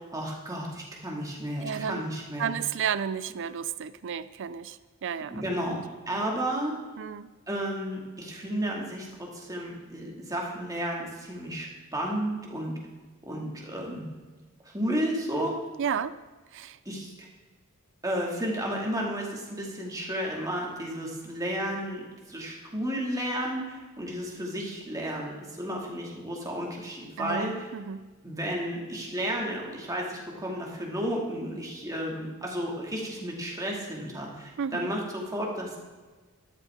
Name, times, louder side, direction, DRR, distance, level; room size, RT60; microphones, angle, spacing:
voice 1, 0.1-2.5 5.3-5.8 6.1-6.8 7.5-12.8 13.2-14.1 14.7-15.5 16.9-17.3 18.0-27.7 28.2-35.8, equal, 15° right, -2 dB, 2.3 m, -32 dB
voice 2, 1.6-2.0 2.4-5.4 6.2-6.3 7.0-7.3 15.8-16.1 16.5-16.8 27.2-28.1 34.6-34.9, right 7 dB, 55° right, 15 dB, 0.4 m, -32 dB
13.0 x 12.0 x 3.7 m, 1.3 s
head